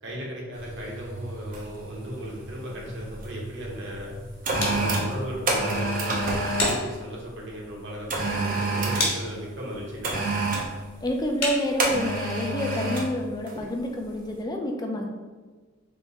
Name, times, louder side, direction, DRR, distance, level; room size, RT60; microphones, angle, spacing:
voice 1, 0.0-4.1 4.6-10.2, equal, 60° right, -3 dB, 1.1 m, -37 dB
sound 1, 0.5-6.3, right 1 dB, 65° left, 1.0 m, -40 dB
sound 2, 0.7-0.9 1.5-1.8 2.1-3.3 3.9-6.9 8.1-9.2 10.0-10.7 11.8-13.1 13.5-13.7, right 2 dB, 40° right, 0.6 m, -27 dB
sound 3, 2.6-12.3, left 2 dB, 45° left, 1.3 m, -36 dB
voice 2, 11.0-15.1, equal, 20° left, 2 dB, 0.5 m, -28 dB
3.5 x 3.0 x 4.2 m, 1.3 s
head